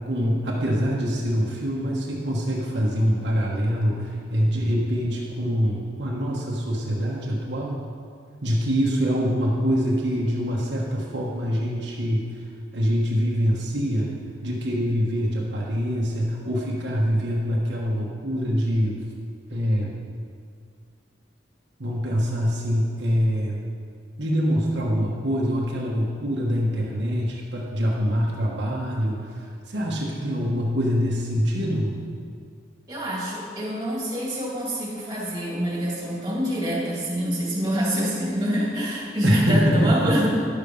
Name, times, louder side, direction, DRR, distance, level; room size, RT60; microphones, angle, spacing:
voice 1, 0.0-7.8 8.4-12.2 12.7-14.1 14.4-18.9 19.5-19.9 21.8-23.6 24.2-31.9 39.2-40.1, equal, 70° right, -4 dB, 1.4 m, -24 dB
voice 2, 32.9-40.3, equal, 20° right, -5 dB, 2.6 m, -26 dB
11.0 x 6.8 x 5.4 m, 2.3 s
head